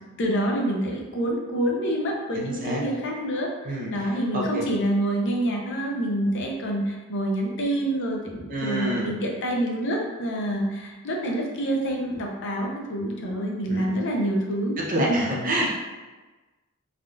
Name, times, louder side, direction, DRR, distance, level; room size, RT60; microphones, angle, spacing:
voice 1, 0.2-15.3, right 1 dB, 60° left, 0 dB, 0.5 m, -27 dB
voice 2, 2.3-2.8 3.6-3.9 4.3-4.7 8.5-9.1 13.7-13.9 14.8-15.7, right 1 dB, 40° right, -3 dB, 0.6 m, -27 dB
3.3 x 2.3 x 2.5 m, 1.2 s
head